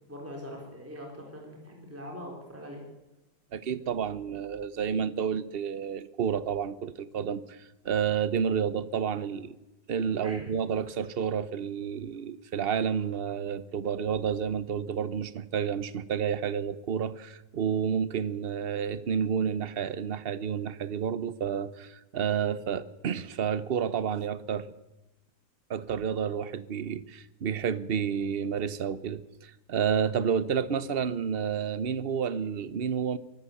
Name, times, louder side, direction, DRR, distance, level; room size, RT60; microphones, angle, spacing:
voice 1, 0.1-2.8 10.2-10.5, equal, 5° right, 4.0 m, -42 dB
voice 2, 3.5-9.6 9.9-24.7 25.7-33.2, right 7 dB, 50° right, 0.7 m, -30 dB
23.5 x 13.5 x 8.5 m
omnidirectional pair, 2.1 m